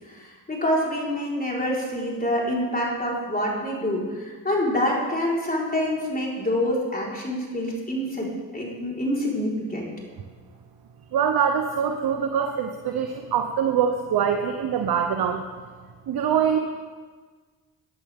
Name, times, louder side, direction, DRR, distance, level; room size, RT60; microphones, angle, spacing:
voice 1, 0.1-9.9, left 1 dB, 20° left, -4 dB, 4.7 m, -26 dB
voice 2, 11.1-15.4 16.1-16.6, right 7 dB, 60° right, 5 dB, 1.1 m, -24 dB
18.5 x 10.5 x 3.7 m, 1.5 s
supercardioid pair, 65°, 43 cm